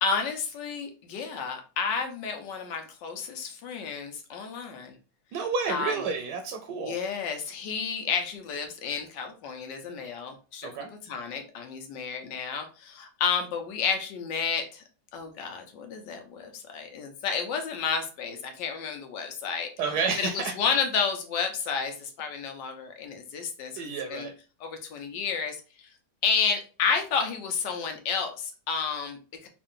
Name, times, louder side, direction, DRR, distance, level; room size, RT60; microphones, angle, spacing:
voice 1, 0.0-4.9 5.7-6.0 6.8-10.7 11.0-14.8 15.1-19.7 20.2-23.7 24.1-24.3 24.6-25.9 26.2-29.5, left 6 dB, 75° left, 1.4 m, -31 dB
voice 2, 5.3-7.0 10.6-10.9 19.8-20.6 23.8-24.3, right 5 dB, 70° right, 1.1 m, -30 dB
3.6 x 2.5 x 3.6 m
omnidirectional pair, 1.9 m